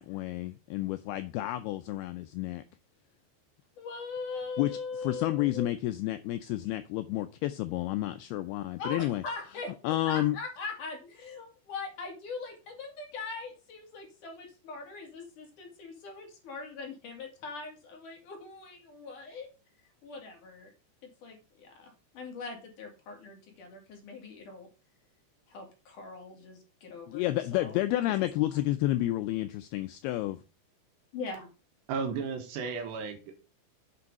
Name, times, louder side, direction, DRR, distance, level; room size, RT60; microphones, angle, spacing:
voice 1, 0.0-2.6 4.6-9.2 9.8-10.4 27.1-30.4, left 15 dB, 85° left, 2.3 m, -30 dB
voice 2, 3.8-5.7 8.8-19.5 20.0-20.7 21.0-24.7 25.5-27.8 28.1-28.3 31.1-31.5, left 4 dB, 55° left, 3.2 m, -41 dB
voice 3, 31.9-33.4, right 5 dB, 75° right, 3.6 m, -34 dB
8.6 x 5.5 x 5.2 m
omnidirectional pair, 5.0 m